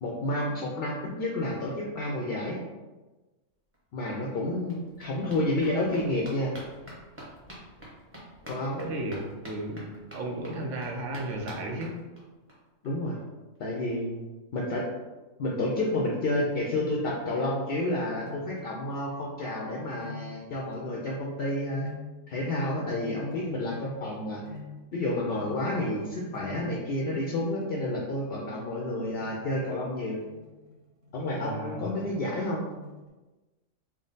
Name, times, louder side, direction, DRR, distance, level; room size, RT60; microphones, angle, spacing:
voice 1, 0.0-2.6 3.9-6.5 8.5-8.8 12.8-13.2 13.6-14.3 14.5-14.9 15.4-21.9 22.3-24.4 24.9-30.2 31.1-32.6, left 1 dB, 65° left, -2 dB, 0.6 m, -30 dB
sound 1, 3.7-3.8 4.1-12.5 12.8-12.9 13.2-13.3 13.5-13.6, equal, 15° right, 0.6 m, -47 dB
voice 2, 8.8-9.9 10.1-11.9 31.4-31.9, right 1 dB, 70° right, 1 dB, 0.9 m, -34 dB
sound 2, 18.3-19.1 19.6-21.1 21.6-27.8 29.0-33.1, left 3 dB, 40° right, 1.0 m, -48 dB
3.6 x 2.1 x 3.8 m, 1.2 s
omnidirectional pair, 1.4 m